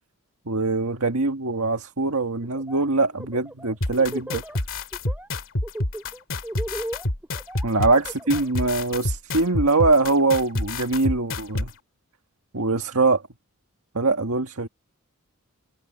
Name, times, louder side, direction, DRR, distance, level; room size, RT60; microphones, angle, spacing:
voice 1, 0.5-4.4 7.6-11.7 12.5-13.2 13.9-14.7, right 3 dB, 75° right, 1.8 m, -22 dB
Laughter, 2.4-2.9 3.2-4.6 4.9-5.3 5.6-8.5, right 1 dB, 5° right, 2.4 m, -36 dB
sound 1, 3.8-11.7, left 1 dB, 60° left, 2.3 m, -27 dB
head